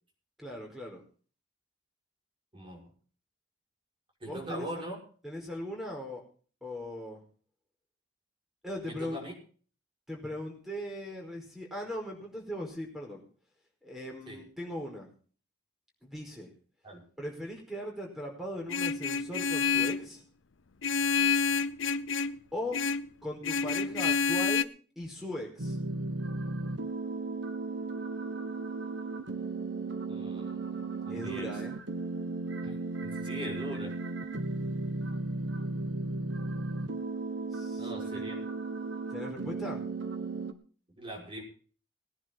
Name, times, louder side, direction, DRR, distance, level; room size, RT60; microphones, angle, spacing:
voice 1, 0.4-1.0 4.3-4.8 5.2-6.2 6.6-7.2 8.6-9.2 10.1-13.2 13.8-15.1 16.0-16.5 17.2-20.2 22.5-22.8 23.2-24.7 25.0-25.8 31.1-31.8 37.5-38.3 39.1-39.8, left 1 dB, ahead, 0 dB, 5.0 m, -39 dB
voice 2, 2.5-2.9 4.2-5.0 8.8-9.3 14.3-14.4 16.8-17.0 30.1-31.5 32.6-32.7 33.0-34.0 37.8-38.4 40.9-41.4, right 1 dB, 25° right, 0 dB, 5.8 m, -41 dB
Vehicle horn car horn honking, 18.7-20.1 20.8-22.4 22.7-23.1 23.4-24.6, left 5 dB, 90° left, 0.7 m, -28 dB
sound 1, 25.6-40.5, right 3 dB, 75° right, 1.4 m, -35 dB
19.5 x 10.5 x 4.0 m, 0.42 s
head